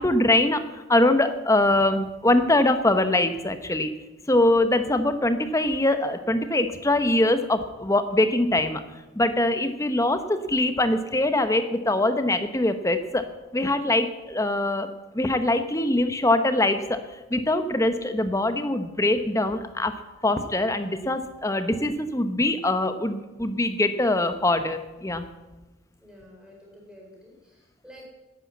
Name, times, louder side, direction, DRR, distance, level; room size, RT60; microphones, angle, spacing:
voice 1, 0.0-3.9 4.3-8.8 9.2-13.3 13.5-14.9 15.1-17.0 17.3-19.9 20.2-25.2, left 1 dB, 15° left, 9 dB, 0.8 m, -23 dB
voice 2, 26.0-28.1, equal, 5° right, -2 dB, 4.2 m, -49 dB
11.5 x 9.9 x 8.4 m, 1.1 s
head